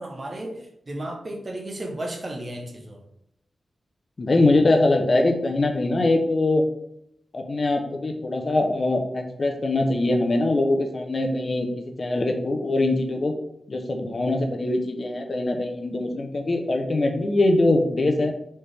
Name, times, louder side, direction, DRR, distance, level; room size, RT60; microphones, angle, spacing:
voice 1, 0.0-3.0, right 1 dB, 35° right, 2 dB, 0.9 m, -34 dB
voice 2, 4.2-6.6 7.3-13.4 13.7-18.3, left 2 dB, 45° left, 4 dB, 0.7 m, -22 dB
4.2 x 3.3 x 3.4 m, 0.75 s
wide cardioid pair, 95°, 0 cm